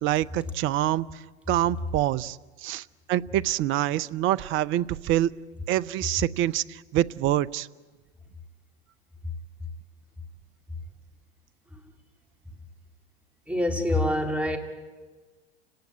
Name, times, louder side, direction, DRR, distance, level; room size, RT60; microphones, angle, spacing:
voice 1, 0.0-1.1 1.5-5.3 5.7-7.7, right 13 dB, 40° right, 0.7 m, -26 dB
voice 2, 13.5-14.6, left 1 dB, 5° right, 3.5 m, -25 dB
30.0 x 18.5 x 9.7 m
hypercardioid pair, 90°, 32 cm